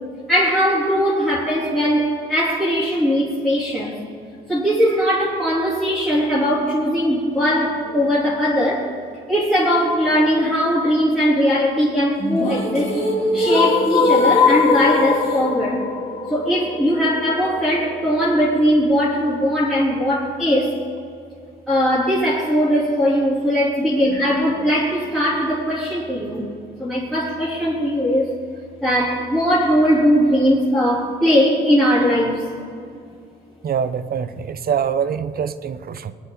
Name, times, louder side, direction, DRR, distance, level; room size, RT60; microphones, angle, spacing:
voice 1, 0.3-4.0 4.5-8.9 9.3-12.9 13.3-15.9 16.3-20.8 21.7-26.5 26.8-28.3 28.8-32.5, equal, ahead, -9 dB, 3.5 m, -19 dB
sound 1, 12.2-18.2, left 4 dB, 30° left, 2.9 m, -20 dB
voice 2, 33.6-36.1, right 7 dB, 50° right, 13 dB, 0.8 m, -24 dB
22.5 x 9.3 x 3.9 m, 2.4 s
cardioid pair, 90°, 20 cm